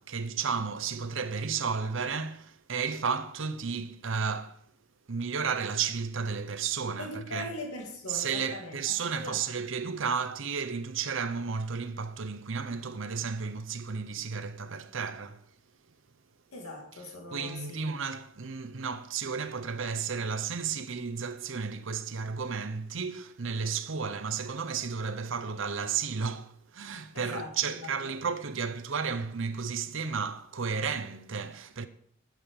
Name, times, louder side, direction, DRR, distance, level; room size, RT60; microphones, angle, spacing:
voice 1, 0.0-4.6 5.1-7.5 8.1-15.5 17.3-31.9, right 5 dB, 60° right, 0.7 m, -33 dB
voice 2, 7.0-8.9 9.2-9.4 16.5-17.9 27.1-28.2, left 2 dB, 85° left, 2.2 m, -41 dB
10.0 x 7.6 x 5.3 m
head